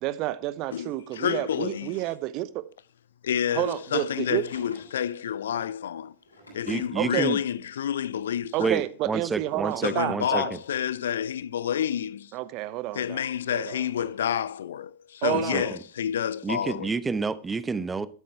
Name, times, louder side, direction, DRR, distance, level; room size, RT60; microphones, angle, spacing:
voice 1, 0.0-2.7 3.5-4.4 6.9-7.4 8.5-10.5 12.3-13.2 13.5-13.8 15.2-15.7, right 16 dB, 40° right, 0.8 m, -30 dB
voice 2, 0.7-2.0 3.2-6.1 6.5-8.7 9.8-12.3 12.9-16.9, left 9 dB, 65° left, 0.5 m, -29 dB
Drawer open or close, 4.1-5.3 6.0-7.0 8.0-8.1 9.9-11.5 11.7-12.1 12.6-14.3 14.7-14.8 15.6-15.7 15.9-16.0 16.7-16.8, left 2 dB, 85° left, 7.6 m, -49 dB
voice 3, 6.7-7.4 8.6-10.6 15.3-15.6 16.4-18.1, right 4 dB, 15° right, 0.8 m, -29 dB
13.0 x 11.5 x 3.2 m
figure-of-eight pair, 90°, 0 cm